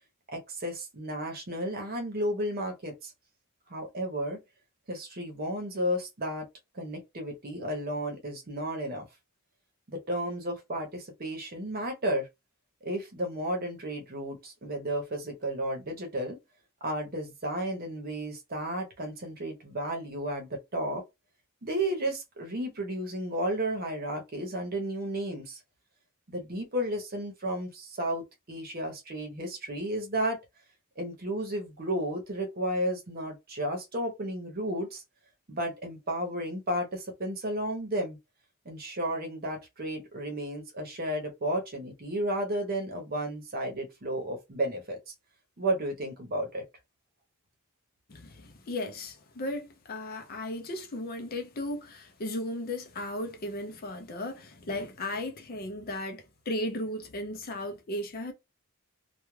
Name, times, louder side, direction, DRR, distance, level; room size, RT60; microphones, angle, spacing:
voice 1, 0.3-3.1 3.7-4.4 4.9-6.5 6.7-9.1 9.9-12.3 12.8-16.4 16.8-21.0 21.6-25.6 26.3-30.4 31.0-35.0 35.5-38.2 38.6-45.1 45.6-46.6, right 1 dB, 45° right, 0.8 m, -33 dB
voice 2, 48.1-58.3, left 1 dB, 45° left, 0.5 m, -36 dB
2.3 x 2.2 x 3.1 m
head